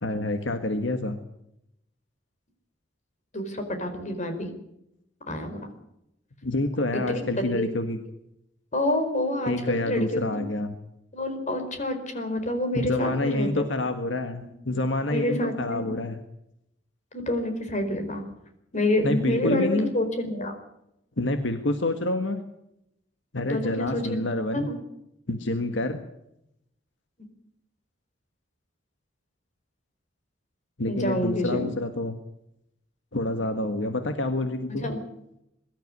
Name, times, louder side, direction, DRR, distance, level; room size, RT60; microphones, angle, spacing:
voice 1, 0.0-1.2 6.4-8.0 9.5-10.7 12.7-16.2 19.0-19.9 21.2-22.4 23.3-24.7 25.3-26.0 30.8-32.1 33.1-34.9, left 2 dB, 80° left, 7 dB, 1.6 m, -27 dB
voice 2, 3.3-4.5 5.3-5.7 7.1-7.7 8.7-10.4 11.1-13.7 15.1-15.9 17.1-18.2 18.7-20.5 23.5-24.0 24.5-24.8 30.9-31.7 34.8-35.0, left 1 dB, 40° left, 6 dB, 4.5 m, -28 dB
22.5 x 13.0 x 9.7 m, 0.83 s
head